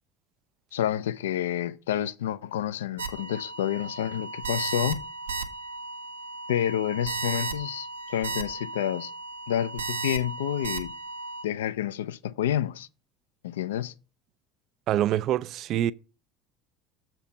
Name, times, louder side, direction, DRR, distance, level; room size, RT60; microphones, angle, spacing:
voice 1, 0.7-5.0 6.5-9.1 9.5-10.9 11.4-12.9 13.4-13.9, left 11 dB, 75° left, 0.4 m, -29 dB
sound 1, 3.0-11.4, right 3 dB, 80° right, 0.7 m, -35 dB
voice 2, 14.9-15.9, right 12 dB, 50° right, 0.3 m, -25 dB
7.2 x 4.5 x 6.3 m
figure-of-eight pair, 65°, 0 cm